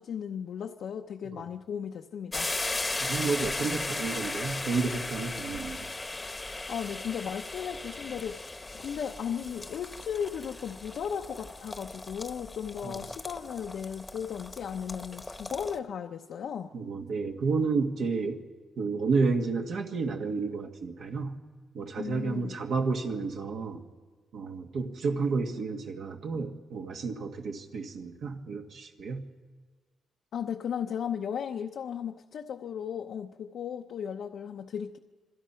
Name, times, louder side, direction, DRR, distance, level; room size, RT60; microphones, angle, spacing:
voice 1, 0.0-2.5 6.7-8.5 8.7-16.7 22.0-22.6 30.3-35.0, left 8 dB, 75° left, 3 dB, 0.8 m, -36 dB
sound 1, 2.3-15.8, left 2 dB, 15° left, 1.0 m, -37 dB
voice 2, 3.0-5.8 12.8-13.0 16.7-18.4 18.8-21.4 21.7-23.8 24.3-29.2, right 4 dB, 70° right, 3 dB, 1.8 m, -31 dB
26.5 x 22.5 x 5.8 m, 1.5 s
cardioid pair, 130°, 0 cm